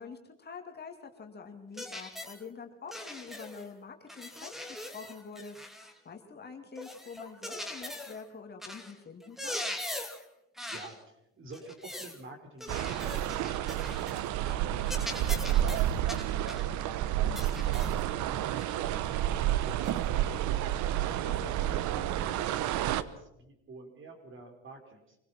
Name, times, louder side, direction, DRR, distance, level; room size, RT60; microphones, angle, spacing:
voice 1, 0.0-5.6 6.0-9.6 21.2-21.7, left 5 dB, 30° left, 4 dB, 2.6 m, -46 dB
sound 1, 1.8-2.4 2.9-3.7 4.1-6.0 6.8-8.2 8.6-8.9 9.2-10.3 10.6-11.0 11.5-12.2 12.6-14.2 14.5-14.6 14.9-16.7 17.4-18.0 18.6-18.7 19.8-20.0, left 1 dB, ahead, 2.6 m, -41 dB
voice 2, 10.7-16.8 17.7-25.2, right 2 dB, 35° right, 4 dB, 4.8 m, -51 dB
sound 2, 12.7-23.0, right 12 dB, 60° right, 1.1 m, -30 dB
25.0 x 17.5 x 5.9 m, 0.84 s
supercardioid pair, 100°, 33 cm